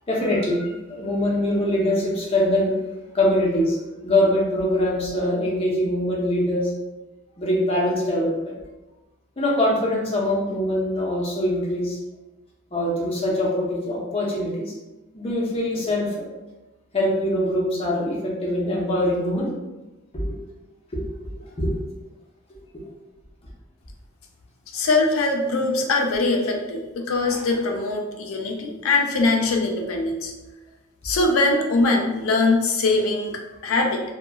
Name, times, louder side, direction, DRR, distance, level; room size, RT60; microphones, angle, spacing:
voice 1, 0.1-2.7 3.1-3.8 4.0-6.7 7.4-8.5 9.4-12.0 12.7-14.7 15.1-16.1 16.9-19.5 20.1-20.4 20.9-21.0 21.6-21.8, left 1 dB, 30° left, -4 dB, 0.6 m, -23 dB
voice 2, 24.7-30.3 31.0-34.0, left 3 dB, 80° left, 2 dB, 0.4 m, -22 dB
2.9 x 2.1 x 2.2 m, 1.1 s
head